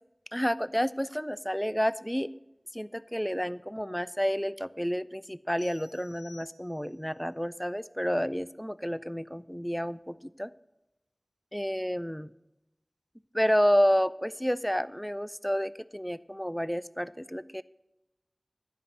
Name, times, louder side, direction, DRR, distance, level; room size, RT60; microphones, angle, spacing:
voice 1, 0.3-2.3 2.7-10.5 11.5-12.3 13.3-17.6, equal, 5° left, 16 dB, 0.3 m, -30 dB
sound 1, 5.6-7.1, left 3 dB, 75° left, 3.2 m, -55 dB
11.0 x 5.4 x 7.9 m, 0.93 s
wide cardioid pair, 40°, 0 cm